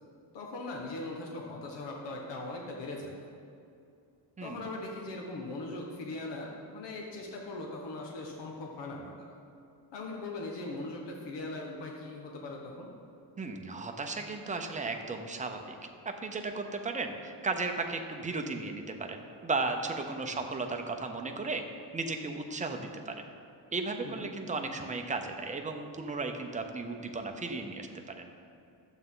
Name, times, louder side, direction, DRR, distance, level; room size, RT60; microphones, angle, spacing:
voice 1, 0.3-3.1 4.4-9.4 9.9-12.9 20.3-20.4 24.0-24.3, left 2 dB, 70° left, 0 dB, 1.3 m, -40 dB
voice 2, 13.4-15.6 16.0-21.6 21.9-23.3 23.7-27.9 28.2-28.3, right 3 dB, 15° right, 4 dB, 0.6 m, -35 dB
12.0 x 8.0 x 3.8 m, 2.5 s
cardioid pair, 155°, 43 cm